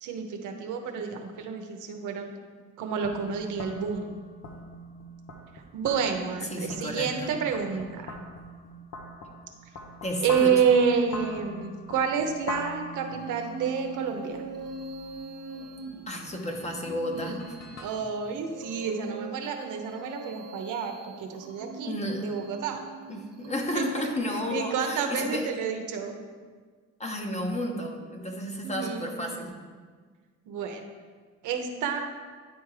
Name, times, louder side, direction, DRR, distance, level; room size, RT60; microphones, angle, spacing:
voice 1, 0.0-2.3 2.8-4.1 5.7-8.2 10.2-14.4 17.1-17.3 17.8-22.0 22.2-22.8 23.7-24.1 24.5-26.1 28.6-29.1 30.5-30.8 31.4-32.0, right 6 dB, 85° right, 4 dB, 0.9 m, -29 dB
sound 1, 3.0-17.9, left 1 dB, 55° left, 1.1 m, -43 dB
voice 2, 6.5-7.3 10.0-10.7 16.1-17.4 21.9-22.3 23.1-25.5 27.0-29.5, left 1 dB, 20° left, 2 dB, 1.1 m, -32 dB
sound 2, 13.1-24.2, right 4 dB, 55° right, 0.9 m, -43 dB
9.5 x 3.6 x 4.8 m, 1.5 s
cardioid pair, 90°, 30 cm